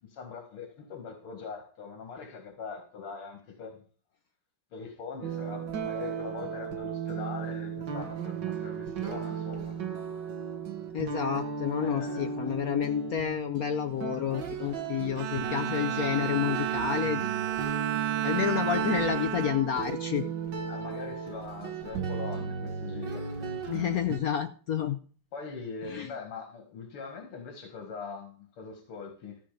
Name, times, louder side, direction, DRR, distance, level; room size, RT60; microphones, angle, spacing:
voice 1, 0.0-3.8 4.7-9.8 11.8-12.6 20.7-23.2 25.3-29.4, left 5 dB, 85° left, 4 dB, 2.7 m, -42 dB
sound 1, 5.2-24.2, right 5 dB, 55° right, 1.9 m, -36 dB
voice 2, 10.9-17.6 18.2-20.2 23.7-25.0 25.9-26.1, left 9 dB, 70° left, 7 dB, 0.8 m, -30 dB
Bowed string instrument, 15.2-20.7, right 12 dB, 85° right, 1.6 m, -32 dB
14.5 x 7.3 x 5.1 m, 0.42 s
omnidirectional pair, 2.4 m